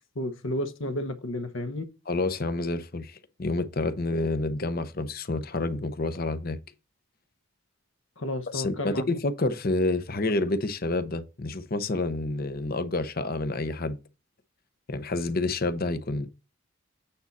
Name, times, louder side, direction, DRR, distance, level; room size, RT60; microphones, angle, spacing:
voice 1, 0.1-1.9 8.2-9.0, left 1 dB, 65° left, 1.1 m, -32 dB
voice 2, 2.1-6.6 8.5-14.0 14.9-16.3, left 2 dB, 45° left, 0.8 m, -28 dB
8.7 x 4.2 x 4.2 m
head